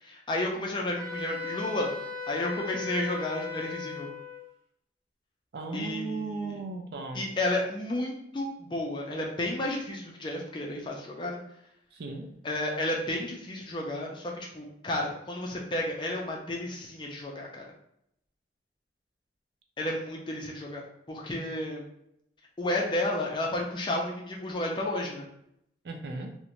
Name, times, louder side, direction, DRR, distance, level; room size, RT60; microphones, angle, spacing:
voice 1, 0.0-1.9 2.3-4.1 5.7-6.6 7.1-11.4 12.4-17.7 19.8-21.8 22.6-25.2, left 1 dB, 25° left, -1 dB, 0.4 m, -32 dB
Wind instrument woodwind instrument, 1.0-4.4, left 4 dB, 30° right, 0.7 m, -37 dB
voice 2, 5.5-7.2 11.9-12.3 25.8-26.4, right 3 dB, 60° right, 4 dB, 0.4 m, -36 dB
2.5 x 2.1 x 2.9 m, 0.77 s
head